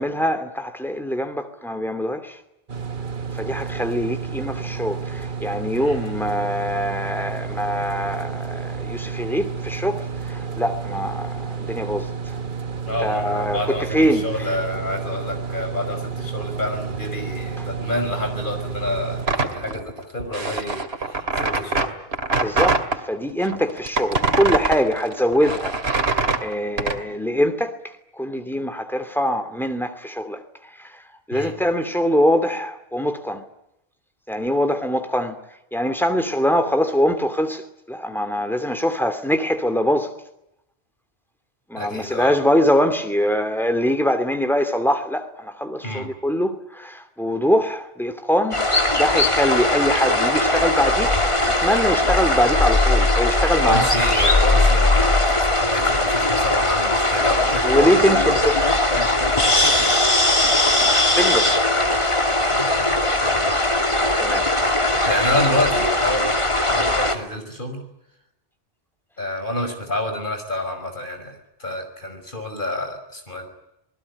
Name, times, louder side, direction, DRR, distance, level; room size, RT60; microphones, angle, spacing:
voice 1, 0.0-2.4 3.3-12.4 13.0-14.5 17.6-17.7 22.4-26.1 26.4-31.0 31.3-33.4 34.3-35.4 35.7-40.1 41.7-53.8 57.6-58.7 61.1-61.6 64.2-64.5, equal, ahead, 2.6 m, -23 dB
sound 1, 2.7-19.3, right 5 dB, 55° right, 1.4 m, -31 dB
voice 2, 5.8-6.1 12.9-21.9 31.3-31.5 41.8-42.4 45.8-46.1 53.6-55.2 55.5-57.7 60.1-60.6 62.5-63.6 65.1-66.3 66.7-67.8 69.2-73.5, left 1 dB, 55° left, 5.9 m, -28 dB
sound 2, 19.2-23.0 23.4-27.0, right 3 dB, 85° right, 2.6 m, -23 dB
sound 3, 48.5-67.2, left 2 dB, 30° left, 2.8 m, -19 dB
28.0 x 20.0 x 9.8 m
omnidirectional pair, 1.0 m